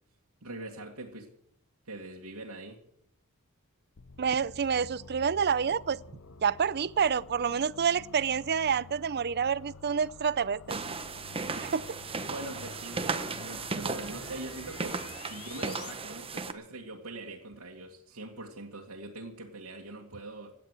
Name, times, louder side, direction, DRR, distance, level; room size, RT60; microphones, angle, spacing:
voice 1, 0.4-1.3 1.9-2.8 12.2-20.5, right 2 dB, 75° right, 2.1 m, -43 dB
sound 1, 4.0-15.9, left 4 dB, 70° left, 0.8 m, -50 dB
voice 2, 4.2-6.0 6.4-10.8 11.6-11.8, right 7 dB, 50° right, 0.6 m, -28 dB
sound 2, 10.7-16.5, right 4 dB, 25° right, 1.1 m, -36 dB
17.0 x 10.0 x 8.2 m
head